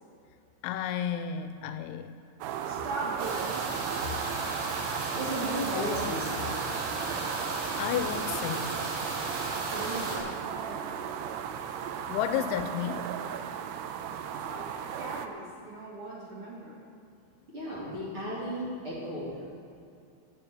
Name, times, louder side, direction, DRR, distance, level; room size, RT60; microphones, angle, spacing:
voice 1, 0.6-2.1 7.8-8.9 12.1-13.2 13.6-13.8, left 9 dB, 85° left, 9 dB, 2.8 m, -32 dB
sound 1, 2.4-15.3, right 8 dB, 90° right, 2.3 m, -36 dB
voice 2, 2.6-3.7 9.6-11.0 14.4-16.8, right 2 dB, 55° right, -7 dB, 1.5 m, -40 dB
sound 2, 3.2-10.2, right 3 dB, 75° right, 4.3 m, -35 dB
voice 3, 5.1-6.5 17.5-19.3, equal, 40° right, -7 dB, 2.4 m, -34 dB
10.0 x 9.3 x 8.2 m, 2.6 s
omnidirectional pair, 5.4 m